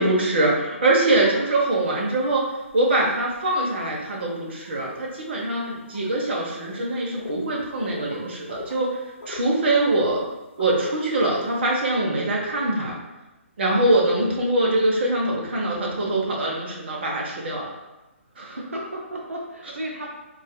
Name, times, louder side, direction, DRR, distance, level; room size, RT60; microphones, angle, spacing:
voice 1, 0.0-5.6 5.9-10.2 10.6-13.0 13.6-17.7 18.4-18.6, right 2 dB, 55° right, -2 dB, 0.8 m, -23 dB
sound 1, 1.6-1.7 2.1-3.4 4.1-4.4 4.6-4.7 5.9-6.0 6.5-6.8 7.2-7.4 7.8-8.8 9.2-10.3 10.6-11.6, left 3 dB, 75° left, 0.7 m, -39 dB
voice 2, 5.5-5.9 12.1-12.3 18.5-20.1, right 1 dB, 90° right, -2 dB, 0.6 m, -34 dB
3.9 x 2.4 x 2.2 m, 1.0 s
figure-of-eight pair, 140°, 7 cm